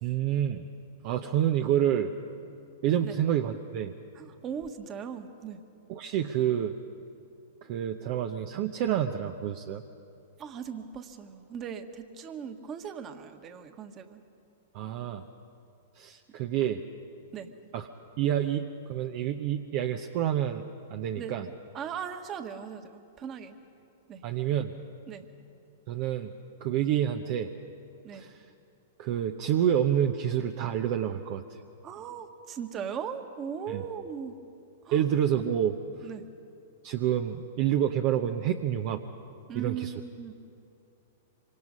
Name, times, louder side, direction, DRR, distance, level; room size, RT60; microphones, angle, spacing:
voice 1, 0.0-0.6 1.0-2.1 2.8-3.9 5.9-6.7 7.6-9.8 14.7-15.2 16.0-16.8 17.7-17.9 18.2-20.6 20.9-21.5 24.2-24.8 25.9-26.3 26.6-27.5 28.1-28.4 29.0-31.4 33.7-33.8 34.9-35.7 36.8-39.0 39.5-39.9, right 10 dB, 50° right, 5 dB, 0.9 m, -28 dB
voice 2, 4.1-5.6 10.4-14.2 17.3-17.5 21.2-23.6 24.1-24.2 25.1-25.2 28.0-28.3 31.8-34.3 34.8-35.0 36.0-36.2 39.5-40.3, right 7 dB, 30° right, 7 dB, 1.6 m, -39 dB
26.0 x 24.5 x 5.4 m, 2.6 s
hypercardioid pair, 110°, 0 cm